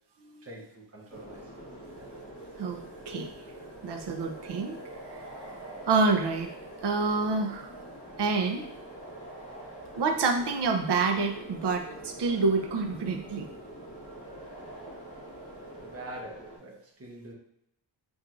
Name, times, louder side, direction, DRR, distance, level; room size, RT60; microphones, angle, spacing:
voice 1, 0.4-1.4 1.9-2.1 15.8-17.3, right 1 dB, 30° right, -1 dB, 0.9 m, -44 dB
sound 1, 1.1-16.6, right 1 dB, 15° left, 1.1 m, -44 dB
voice 2, 2.6-3.3 3.8-4.8 5.9-6.5 6.8-7.7 8.2-8.7 10.0-13.5, right 4 dB, 60° right, 4 dB, 0.6 m, -27 dB
5.9 x 2.6 x 2.5 m, 0.79 s
wide cardioid pair, 150°, 46 cm